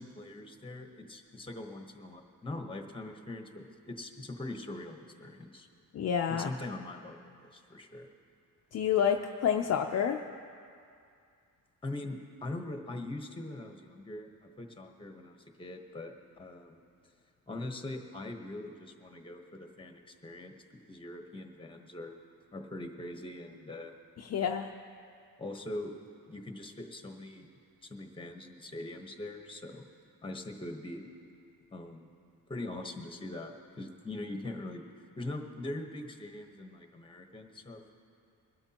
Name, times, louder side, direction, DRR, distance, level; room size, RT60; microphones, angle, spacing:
voice 1, 0.0-5.7 6.3-8.1 11.8-16.8 17.5-22.1 22.5-23.9 25.4-25.9 26.3-27.5 27.8-29.8 30.2-31.0 31.7-32.1 32.5-34.8 35.2-37.9, left 2 dB, 15° left, 4 dB, 1.0 m, -42 dB
voice 2, 5.9-6.5 8.7-10.2 24.2-24.7, left 8 dB, 45° left, 4 dB, 0.5 m, -29 dB
22.0 x 12.5 x 2.9 m, 2.4 s
wide cardioid pair, 135°, 34 cm